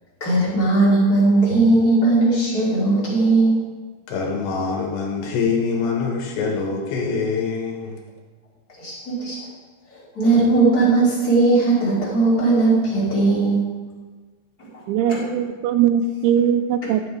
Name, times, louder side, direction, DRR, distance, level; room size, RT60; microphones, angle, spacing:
voice 1, 0.2-3.6 8.8-9.4 10.1-13.6 15.0-15.2 16.8-16.9, right 2 dB, 25° left, -7 dB, 2.9 m, -18 dB
voice 2, 4.1-8.0, left 5 dB, 70° left, 1 dB, 3.4 m, -24 dB
voice 3, 14.9-17.1, right 8 dB, 90° right, 11 dB, 3.0 m, -20 dB
12.5 x 7.8 x 4.8 m, 1.4 s
omnidirectional pair, 5.4 m